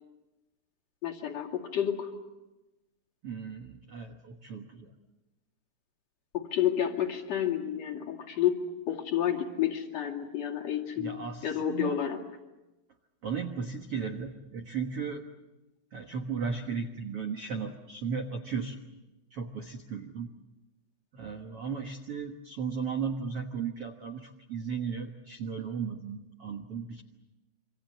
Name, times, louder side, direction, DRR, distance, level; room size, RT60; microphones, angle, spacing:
voice 1, 1.0-2.1 6.3-8.6 8.9-12.2, left 10 dB, 45° left, 1 dB, 3.0 m, -30 dB
voice 2, 3.2-4.9 11.0-12.0 13.2-15.3 15.9-18.8 19.3-20.3 21.1-27.0, right 6 dB, 75° right, 5 dB, 1.3 m, -36 dB
27.5 x 25.5 x 7.6 m, 1.0 s
omnidirectional pair, 4.9 m